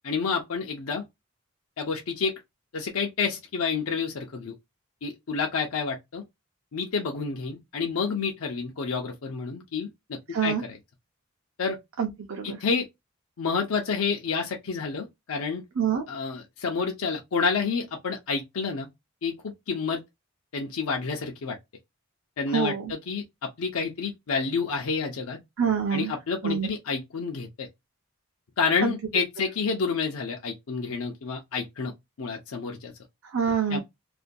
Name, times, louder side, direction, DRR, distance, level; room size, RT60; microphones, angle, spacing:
voice 1, 0.0-1.0 1.8-2.4 2.7-4.5 5.0-6.2 6.7-10.8 11.6-11.8 12.4-12.9 13.4-15.6 16.1-18.9 19.2-20.0 20.5-21.6 22.4-25.4 25.9-27.7 28.6-31.9 32.2-32.9 33.7-33.8, left 5 dB, 80° left, 0.5 m, -29 dB
voice 2, 10.3-10.6 12.0-12.6 15.8-16.0 22.5-22.9 25.6-26.1 26.4-26.7 28.8-28.9 33.2-33.8, right 7 dB, 70° right, 0.5 m, -26 dB
2.5 x 2.2 x 2.5 m
head